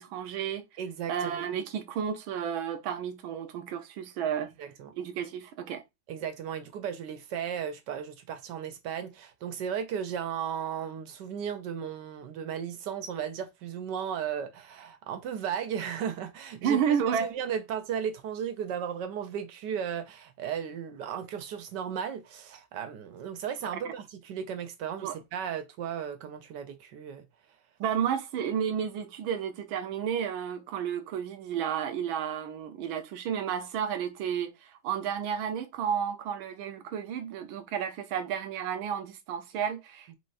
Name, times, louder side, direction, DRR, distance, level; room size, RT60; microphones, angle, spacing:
voice 1, 0.0-0.6 1.1-4.5 4.9-5.8 16.6-17.3 25.0-25.2 27.8-40.2, right 8 dB, 90° right, 1.5 m, -32 dB
voice 2, 0.8-1.4 4.6-4.9 6.1-16.8 17.2-27.3, right 8 dB, 75° right, 1.1 m, -35 dB
4.8 x 3.9 x 2.5 m
omnidirectional pair, 2.1 m